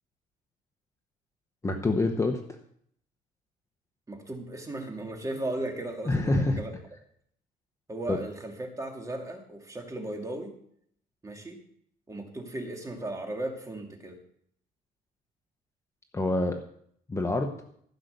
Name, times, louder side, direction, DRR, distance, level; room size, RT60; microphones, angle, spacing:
voice 1, 1.6-2.4 6.1-6.6 8.1-8.2 16.1-16.6 17.1-17.5, left 2 dB, 15° left, 4 dB, 1.2 m, -26 dB
voice 2, 4.1-6.8 7.9-10.5 11.2-11.6 12.1-14.2, right 1 dB, 20° right, 2 dB, 2.6 m, -36 dB
14.5 x 5.8 x 6.8 m, 0.66 s
cardioid pair, 110°, 17 cm